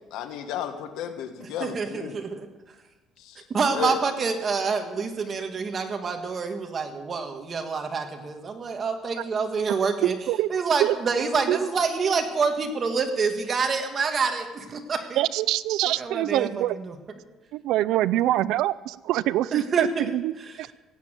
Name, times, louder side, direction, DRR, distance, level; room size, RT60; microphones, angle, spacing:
voice 1, 0.1-2.1 3.2-3.4 3.7-4.0, left 9 dB, 80° left, 7 dB, 1.6 m, -33 dB
voice 2, 1.4-2.5 3.5-10.1 10.5-15.2 16.0-17.0 19.5-20.1 20.5-20.6, right 5 dB, 30° right, 5 dB, 1.7 m, -27 dB
voice 3, 10.0-10.5 10.8-10.9 11.5-11.6 15.2-16.8 17.5-20.3 20.6-20.7, right 14 dB, 75° right, 17 dB, 0.4 m, -24 dB
16.5 x 8.7 x 7.5 m, 1.2 s
cardioid pair, 150°, 0 cm